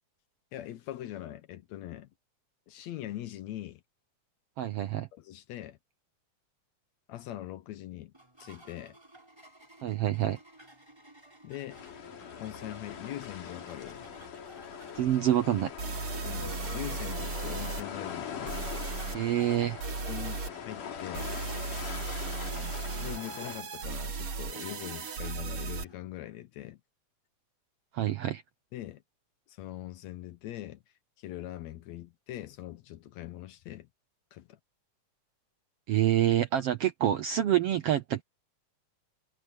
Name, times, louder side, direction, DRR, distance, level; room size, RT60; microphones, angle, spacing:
voice 1, 0.5-2.1 2.7-3.8 5.1-5.8 7.1-8.1 8.4-9.0 11.4-11.8 12.4-14.0 16.1-18.6 20.1-21.4 23.0-26.8 28.7-29.0 29.5-30.8 31.2-33.9 34.3-34.6, left 13 dB, 70° left, 1.9 m, -42 dB
voice 2, 4.6-5.1 9.8-10.4 14.9-15.7 19.1-19.8 27.9-28.4 35.9-38.2, right 12 dB, 70° right, 1.5 m, -27 dB
sound 1, 8.1-25.9, right 1 dB, 5° right, 5.8 m, -55 dB
sound 2, 11.7-23.6, left 7 dB, 90° left, 4.1 m, -42 dB
sound 3, 15.1-15.2 15.8-17.8 18.5-19.2 19.8-20.5 21.1-25.8, right 4 dB, 50° right, 2.7 m, -36 dB
omnidirectional pair, 3.6 m